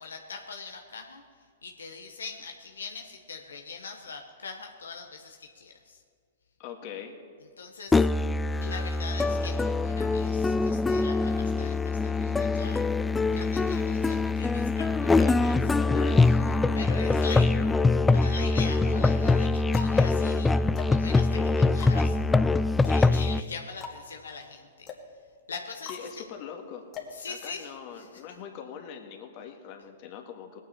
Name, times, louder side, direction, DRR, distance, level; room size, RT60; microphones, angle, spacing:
voice 1, 0.0-6.0 7.6-8.1 8.6-12.8 13.3-15.8 16.1-16.4 16.7-17.5 18.1-20.5 20.9-24.9 25.5-26.2 27.1-28.2, left 5 dB, 80° left, 4 dB, 1.1 m, -42 dB
voice 2, 6.6-7.1 15.9-16.3 17.2-17.7 25.9-26.8 27.3-30.6, left 8 dB, 45° left, 4 dB, 1.8 m, -42 dB
Musical instrument, 7.9-23.4, left 3 dB, 10° left, 0.3 m, -24 dB
sound 1, 19.7-27.9, left 5 dB, 30° left, 2.0 m, -45 dB
20.0 x 9.2 x 4.4 m, 2.2 s
hypercardioid pair, 115°, 0 cm